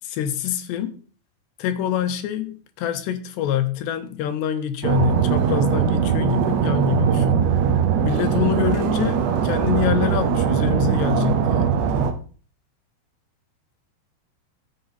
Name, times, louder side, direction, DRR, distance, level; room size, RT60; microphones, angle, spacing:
voice 1, 0.0-1.0 1.6-7.4 8.0-11.8, left 10 dB, 90° left, 3.3 m, -26 dB
sound 1, 4.8-12.1, right 7 dB, 90° right, 3.4 m, -20 dB
14.0 x 7.6 x 4.1 m
omnidirectional pair, 4.8 m